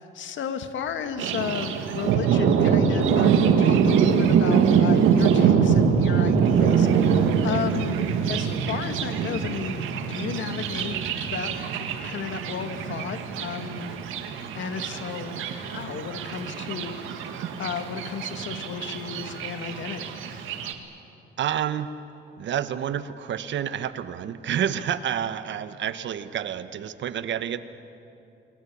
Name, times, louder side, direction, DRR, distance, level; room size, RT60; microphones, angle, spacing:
voice 1, 0.0-14.0 14.5-20.5, left 7 dB, 70° left, 8 dB, 2.1 m, -34 dB
Thunder, 1.2-20.7, right 7 dB, 90° right, 2.0 m, -24 dB
voice 2, 21.4-21.9 22.3-27.6, right 9 dB, 65° right, 12 dB, 1.3 m, -29 dB
28.5 x 22.0 x 8.6 m, 2.8 s
cardioid pair, 90°, 20 cm